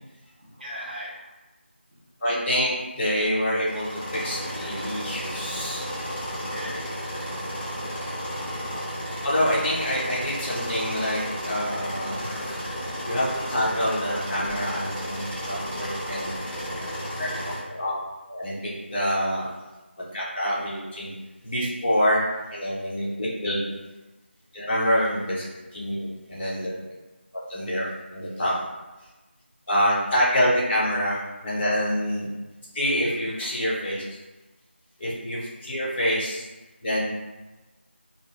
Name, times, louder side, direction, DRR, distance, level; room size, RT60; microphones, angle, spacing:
voice 1, 0.4-1.3 1.9-2.0 6.5-7.1 26.8-26.9, equal, 50° right, -5 dB, 1.1 m, -40 dB
voice 2, 2.2-5.9 9.2-12.6 13.0-15.2 15.5-16.3 17.2-17.3 17.7-17.9 18.3-19.5 20.1-21.1 21.4-22.2 22.5-23.7 24.5-25.5 25.7-26.7 27.5-27.9 28.1-28.5 29.7-32.3 32.7-34.0 35.0-36.4 36.8-37.1, equal, 10° left, -11 dB, 0.5 m, -26 dB
sound 1, 3.7-17.6, equal, 15° right, 0.9 m, -33 dB
3.6 x 2.2 x 3.4 m, 1.1 s
figure-of-eight pair, 170°, 6 cm